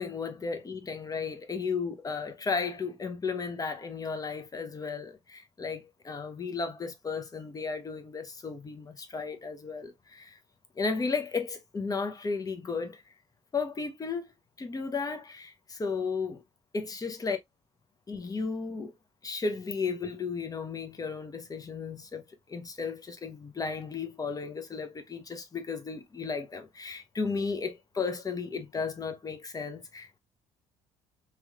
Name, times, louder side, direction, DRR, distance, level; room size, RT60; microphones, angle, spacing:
voice 1, 0.0-10.4 10.8-13.0 13.5-14.3 14.6-16.4 16.7-17.4 18.1-18.9 19.2-22.2 22.5-30.2, left 4 dB, 30° left, 0.9 m, -34 dB
3.1 x 3.1 x 2.4 m
supercardioid pair, 75°, 13 cm